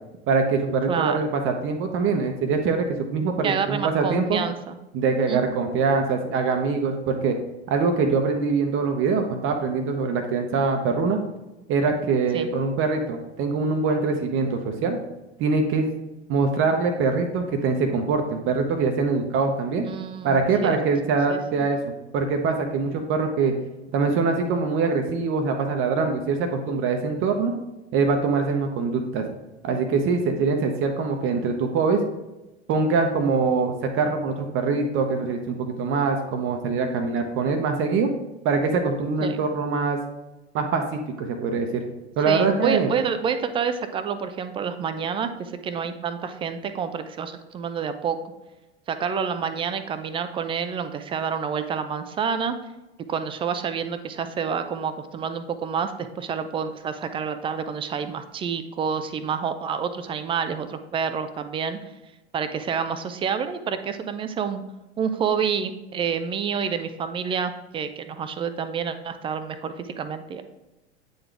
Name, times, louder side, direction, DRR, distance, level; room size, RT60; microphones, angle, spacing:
voice 1, 0.3-4.4 4.9-7.3 7.7-11.2 11.7-15.0 15.4-15.9 16.3-19.8 20.2-21.8 22.1-23.5 23.9-27.5 27.9-29.3 29.6-32.0 32.7-38.1 38.4-40.0 40.5-41.8 42.2-42.9, right 4 dB, 40° right, 4 dB, 0.8 m, -23 dB
voice 2, 0.9-1.2 3.4-4.8 5.3-5.5 12.3-12.5 19.8-20.8 21.3-21.4 39.2-39.4 42.3-48.2 48.9-52.6 53.1-61.8 62.3-64.6 65.0-70.4, right 6 dB, 15° right, 9 dB, 0.3 m, -28 dB
8.8 x 3.9 x 3.3 m, 1.0 s
figure-of-eight pair, 85°, 34 cm